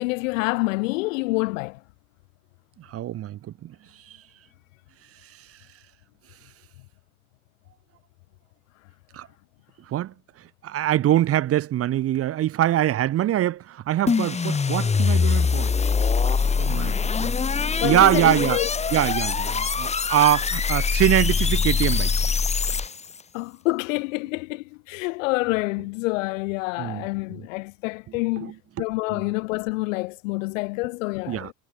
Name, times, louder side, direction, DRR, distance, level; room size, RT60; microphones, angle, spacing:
voice 1, 0.0-1.8 17.8-18.7 23.3-28.5 28.8-31.5, left 25 dB, 65° left, 1.1 m, -27 dB
voice 2, 2.8-3.7 4.1-4.2 5.4-5.5 9.1-9.3 9.9-10.1 10.6-15.7 16.5-16.9 17.2-17.3 17.8-18.6 18.9-22.1 26.8-27.0 28.4-28.5 29.1-29.2 31.3-31.5, right 12 dB, 35° right, 0.9 m, -23 dB
sound 1, 14.1-23.2, left 5 dB, 15° left, 1.2 m, -23 dB
hypercardioid pair, 75°, 42 cm